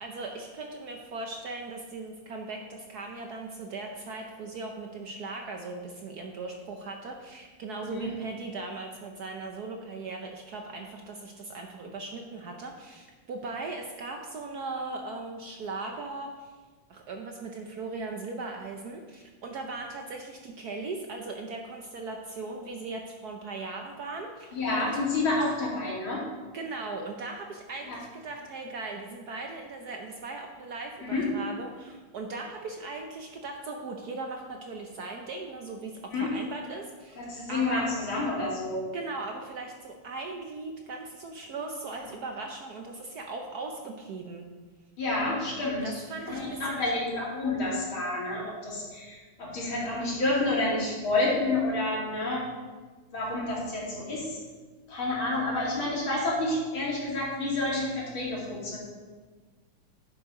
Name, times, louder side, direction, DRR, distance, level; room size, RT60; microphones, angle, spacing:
voice 1, 0.0-16.5 16.9-24.9 26.5-37.2 37.5-37.9 38.9-44.5 45.8-46.9, right 3 dB, 60° right, 2 dB, 1.1 m, -38 dB
voice 2, 7.8-8.1 24.5-26.2 27.9-28.0 31.0-31.3 36.1-36.3 37.2-38.8 45.0-45.9 46.3-52.5 53.1-54.4 54.9-58.8, left 2 dB, 70° left, -5 dB, 3.4 m, -29 dB
11.0 x 8.0 x 3.7 m, 1.4 s
omnidirectional pair, 2.3 m